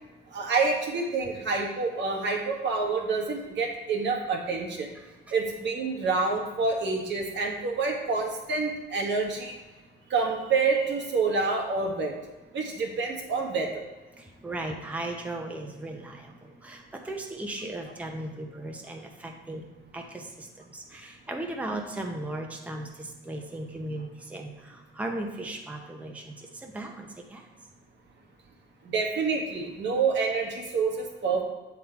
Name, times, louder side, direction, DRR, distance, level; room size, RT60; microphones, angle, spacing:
voice 1, 0.3-4.9 5.3-9.5 10.1-12.2 12.5-13.9 28.8-31.4, right 4 dB, 65° right, 1 dB, 1.3 m, -27 dB
voice 2, 14.4-19.6 19.9-27.4, right 1 dB, 5° right, 2 dB, 0.8 m, -37 dB
7.2 x 4.0 x 4.6 m, 1.2 s
cardioid pair, 90°, 20 cm